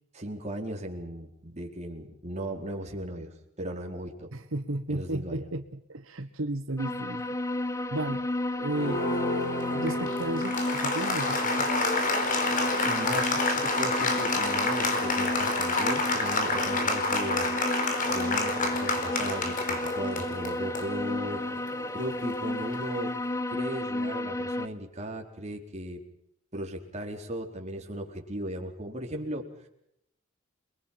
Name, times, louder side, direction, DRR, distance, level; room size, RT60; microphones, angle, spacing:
voice 1, 0.1-4.3 4.9-5.5 12.5-21.4 21.9-23.1 23.5-26.0 26.5-29.5, right 1 dB, 35° right, 2 dB, 4.4 m, -37 dB
voice 2, 4.3-7.5 7.9-8.2 8.5-9.0 9.7-11.7, right 1 dB, 80° right, 9 dB, 1.3 m, -34 dB
sound 1, 6.8-24.7, left 1 dB, 15° left, 1.1 m, -32 dB
Applause, 8.7-23.0, left 2 dB, 40° left, 4.8 m, -29 dB
30.0 x 22.5 x 5.9 m, 0.77 s
head